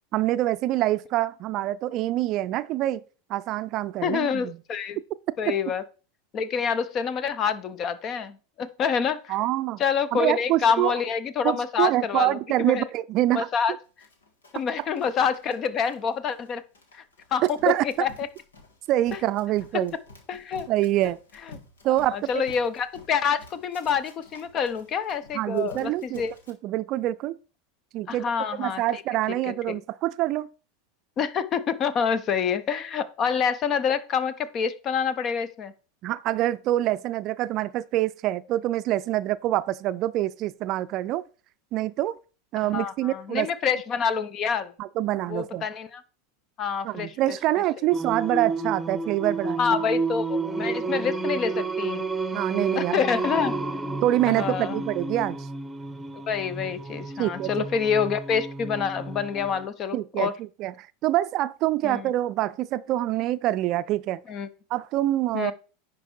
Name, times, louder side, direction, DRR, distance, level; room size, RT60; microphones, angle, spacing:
voice 1, 0.1-3.0 3.3-4.6 5.5-5.6 9.3-9.8 10.1-11.0 11.4-13.5 17.4-17.8 18.9-19.9 20.7-21.2 21.8-22.4 25.3-26.2 26.5-27.4 27.9-28.3 28.6-30.5 36.0-41.2 41.7-42.2 42.5-43.5 44.8-45.6 46.8-49.6 52.3-53.0 54.0-55.5 57.2-57.7 59.9-60.7 61.0-64.2 64.7-65.5, right 15 dB, 50° right, 0.4 m, -25 dB
voice 2, 4.0-5.0 5.4-5.8 6.3-9.4 9.8-12.9 13.3-13.7 14.5-16.6 16.9-17.0 17.3-18.3 20.3-20.7 22.1-26.3 28.1-29.0 29.7-29.8 31.2-35.7 42.6-44.7 45.3-46.0 46.6-47.1 49.6-52.0 52.7-53.6 54.3-54.8 56.3-60.3 61.8-62.0 64.3-64.5 65.3-65.5, left 6 dB, 40° left, 0.7 m, -27 dB
Run, 14.0-26.5, left 3 dB, 85° left, 1.6 m, -51 dB
Singing, 47.9-59.7, right 3 dB, 5° right, 0.9 m, -31 dB
10.0 x 4.6 x 4.4 m
hypercardioid pair, 90°, 0 cm